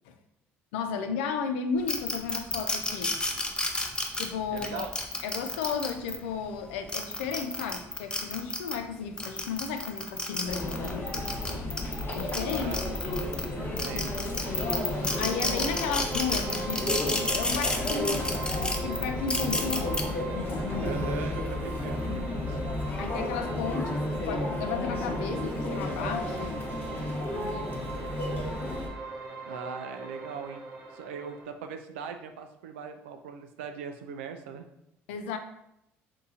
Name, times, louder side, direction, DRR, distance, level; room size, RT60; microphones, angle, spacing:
voice 1, 0.7-3.1 4.2-4.9 5.2-11.2 12.1-12.7 15.1-18.4 18.7-20.0 23.0-26.6 35.1-35.4, left 6 dB, 85° left, 7 dB, 0.4 m, -34 dB
sound 1, 1.9-6.2 6.7-8.8 9.2-13.4 13.8-20.0, left 2 dB, 15° left, 0.6 m, -31 dB
voice 2, 4.5-4.9 12.5-13.0 13.5-14.3 20.8-22.6 29.5-30.6 30.9-34.7, right 6 dB, 90° right, 6 dB, 0.4 m, -40 dB
Conversation / Chatter / Crowd, 10.5-28.9, left 1 dB, 35° left, 1.0 m, -32 dB
sound 2, 14.4-31.4, right 3 dB, 55° right, 0.7 m, -41 dB
2.7 x 2.6 x 3.7 m, 0.82 s
hypercardioid pair, 70°, 6 cm